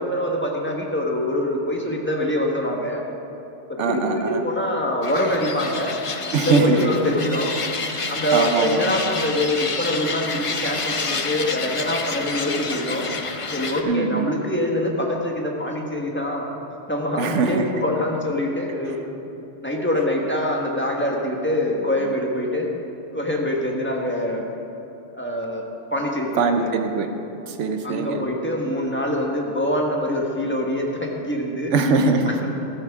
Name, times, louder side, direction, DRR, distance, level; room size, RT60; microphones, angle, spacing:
voice 1, 0.0-3.0 3.9-5.9 6.4-7.5 8.1-13.0 13.5-16.5 16.9-19.1 19.6-22.7 23.1-24.5 25.1-25.6 25.9-26.7 27.8-31.7 32.4-32.6, left 1 dB, 10° left, -1 dB, 1.3 m, -24 dB
voice 2, 3.8-4.4 6.3-6.8 7.9-8.9 13.8-14.3 17.2-17.6 26.4-27.1 27.5-28.2 31.7-32.4, right 4 dB, 85° right, 6 dB, 1.1 m, -22 dB
sound 1, 5.0-13.8, left 4 dB, 35° left, 0.6 m, -29 dB
14.0 x 13.5 x 3.6 m, 2.8 s
omnidirectional pair, 1.2 m